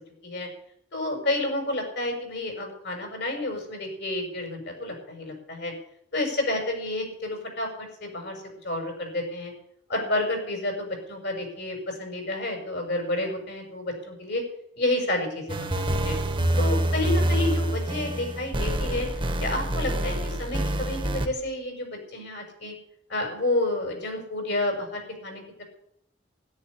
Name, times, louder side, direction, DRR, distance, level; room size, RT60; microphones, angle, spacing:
voice 1, 0.9-5.7 6.1-9.5 9.9-14.4 14.8-16.2 16.6-19.1 19.4-22.7 23.1-25.6, left 1 dB, 60° left, 3 dB, 6.7 m, -30 dB
sound 1, 15.5-21.3, right 1 dB, 25° right, 1.5 m, -26 dB
13.5 x 12.0 x 8.5 m, 0.70 s
head